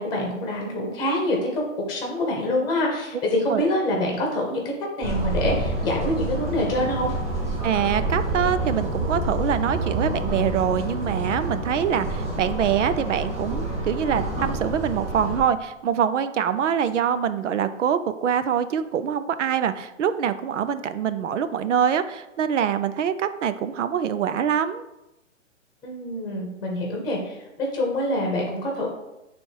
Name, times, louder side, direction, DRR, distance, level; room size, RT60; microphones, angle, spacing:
voice 1, 0.0-1.6 1.9-7.1 25.8-28.9, left 1 dB, 10° left, -1 dB, 1.7 m, -26 dB
sound 1, 5.0-15.4, right 1 dB, 15° right, 1.4 m, -28 dB
voice 2, 7.6-24.8, right 8 dB, 65° right, 12 dB, 0.7 m, -24 dB
8.8 x 3.5 x 4.7 m, 0.93 s
hypercardioid pair, 135°, 39 cm